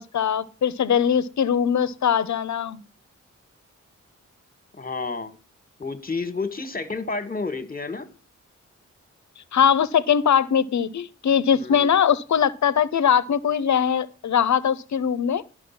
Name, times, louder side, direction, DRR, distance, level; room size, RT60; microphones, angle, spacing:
voice 1, 0.0-2.8 9.5-15.4, left 8 dB, 70° left, 16 dB, 0.8 m, -21 dB
voice 2, 4.7-5.4 5.8-8.1 11.6-11.9, left 3 dB, 30° left, 10 dB, 1.6 m, -30 dB
11.0 x 6.5 x 5.8 m, 0.34 s
cardioid pair, 55°, 30 cm